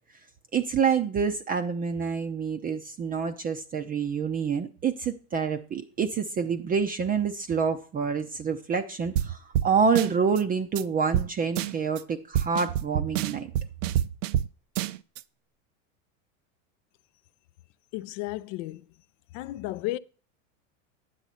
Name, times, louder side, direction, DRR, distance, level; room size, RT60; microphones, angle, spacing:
voice 1, 0.5-13.5, right 6 dB, 20° right, 0.6 m, -27 dB
sound 1, 9.2-9.3 9.5-9.7 10.0-10.4 10.8-10.9 11.1-11.3 11.6-12.0 12.3-14.5 14.8-15.2, right 11 dB, 65° right, 0.6 m, -27 dB
voice 2, 17.9-18.9 19.3-20.0, left 17 dB, 50° left, 0.4 m, -33 dB
9.3 x 7.2 x 4.2 m
supercardioid pair, 115°, 39 cm